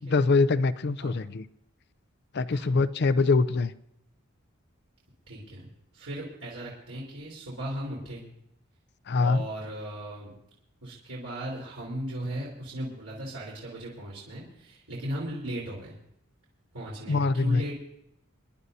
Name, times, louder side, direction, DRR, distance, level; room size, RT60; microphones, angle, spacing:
voice 1, 0.0-1.4 2.3-3.7 9.1-9.4 17.1-17.6, left 3 dB, 50° left, 15 dB, 0.5 m, -24 dB
voice 2, 2.5-2.8 5.3-8.2 9.2-10.3 10.8-15.9 16.7-17.7, right 1 dB, 75° right, -5 dB, 4.0 m, -37 dB
26.5 x 11.5 x 2.7 m, 0.76 s
head